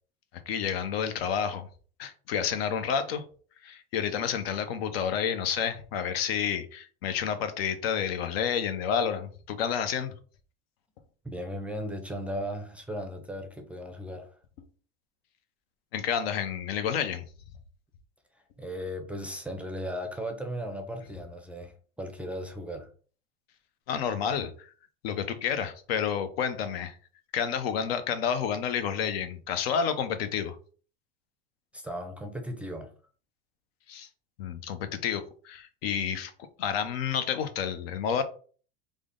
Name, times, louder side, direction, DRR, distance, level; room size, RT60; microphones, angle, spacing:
voice 1, 0.5-1.7 2.0-3.2 3.6-10.1 15.9-17.2 23.9-24.5 25.0-27.0 27.3-30.6 33.9-34.1 34.4-36.3 36.6-38.2, left 7 dB, 75° left, 0.7 m, -30 dB
voice 2, 11.2-14.4 18.6-22.9 31.7-32.9, equal, 5° right, 0.4 m, -36 dB
3.4 x 2.1 x 3.6 m
supercardioid pair, 110°, 30 cm